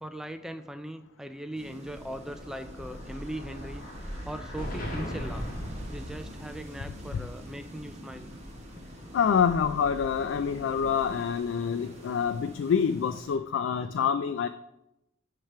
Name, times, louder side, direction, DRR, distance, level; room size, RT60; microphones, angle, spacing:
voice 1, 0.0-3.8 4.3-5.4 5.9-8.3, right 1 dB, 5° right, 8 dB, 0.3 m, -39 dB
sound 1, 1.5-13.4, equal, 35° right, 1.1 m, -45 dB
Explosion, 2.2-6.8, equal, 50° left, 1.7 m, -38 dB
voice 2, 9.1-14.5, left 7 dB, 85° left, 11 dB, 0.3 m, -26 dB
8.9 x 3.3 x 5.6 m, 0.88 s
head